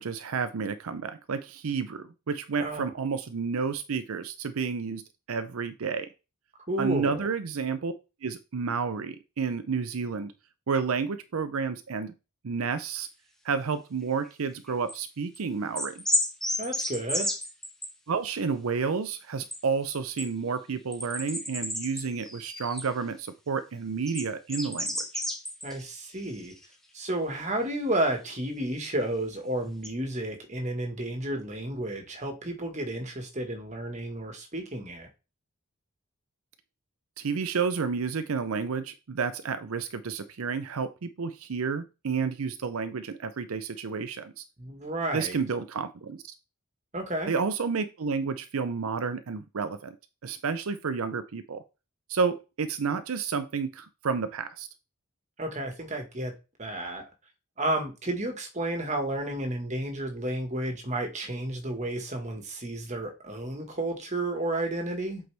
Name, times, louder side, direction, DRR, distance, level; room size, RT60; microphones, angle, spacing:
voice 1, 0.0-6.1 6.8-7.9 8.2-10.3 10.7-12.1 12.4-13.1 13.4-16.0 18.1-25.2 37.2-44.4 45.1-46.3 47.3-50.0 50.2-51.6 52.1-54.7, right 5 dB, 80° right, 0.6 m, -30 dB
voice 2, 6.7-7.3 16.6-17.3 25.6-26.5 26.9-35.1 44.6-45.4 46.9-47.3 55.4-56.3 56.6-57.0 57.6-65.2, right 1 dB, 35° right, 1.5 m, -32 dB
sound 1, 14.3-15.0 15.3-15.4 15.8-17.9 19.5-19.6 19.9-20.3 20.9-22.9 24.1-25.9 26.2-26.6 28.3-28.4 29.8-29.9, left 1 dB, ahead, 1.0 m, -32 dB
7.8 x 4.6 x 3.4 m
head